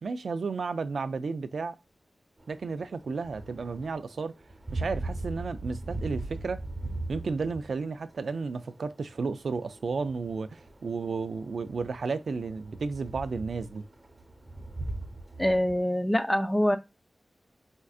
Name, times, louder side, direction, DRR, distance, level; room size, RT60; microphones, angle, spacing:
voice 1, 0.0-1.8 2.5-4.3 4.7-6.6 7.1-13.8, right 4 dB, 85° right, 0.3 m, -33 dB
sound 1, 2.4-15.8, right 2 dB, 30° right, 0.9 m, -40 dB
voice 2, 15.4-16.8, equal, 10° left, 0.4 m, -25 dB
4.3 x 2.5 x 2.3 m
wide cardioid pair, 115°, 0 cm